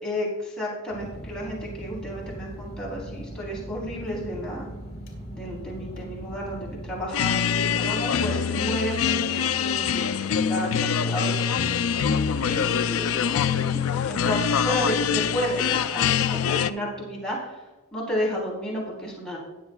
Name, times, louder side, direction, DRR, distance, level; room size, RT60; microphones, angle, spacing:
voice 1, 0.0-4.6 5.3-17.6 17.9-19.4, equal, 5° left, -7 dB, 3.6 m, -32 dB
sound 1, 0.9-7.1, right 1 dB, 55° left, 3.7 m, -39 dB
sound 2, 7.1-16.7, left 7 dB, 80° left, 0.4 m, -24 dB
21.0 x 7.0 x 2.4 m, 1.2 s
head